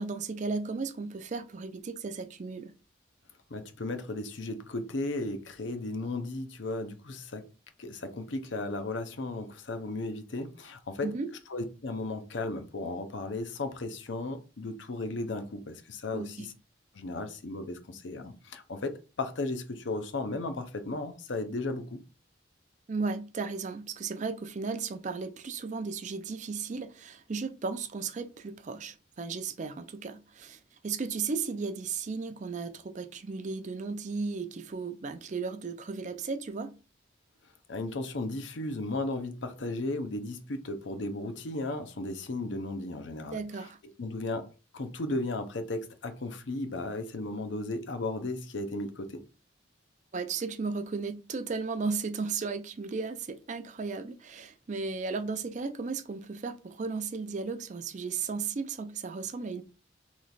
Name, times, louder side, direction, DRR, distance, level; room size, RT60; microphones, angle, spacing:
voice 1, 0.0-2.7 11.0-11.3 16.1-16.5 22.9-36.7 43.3-43.8 50.1-59.6, right 4 dB, 40° right, 0.4 m, -35 dB
voice 2, 3.5-7.4 7.8-11.1 11.5-16.5 16.9-22.0 37.7-43.4 44.0-44.5 44.7-49.2, left 2 dB, 70° left, 0.6 m, -35 dB
3.2 x 3.1 x 3.9 m
head